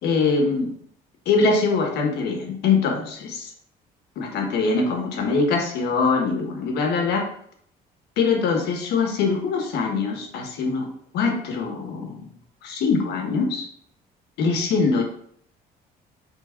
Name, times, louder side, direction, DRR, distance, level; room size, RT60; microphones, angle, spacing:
voice 1, 0.0-0.7 1.2-3.5 4.2-7.3 8.2-12.3 12.6-13.7 14.4-15.0, left 4 dB, 80° left, 3 dB, 1.5 m, -23 dB
4.9 x 3.9 x 5.7 m, 0.64 s
cardioid pair, 110°, 17 cm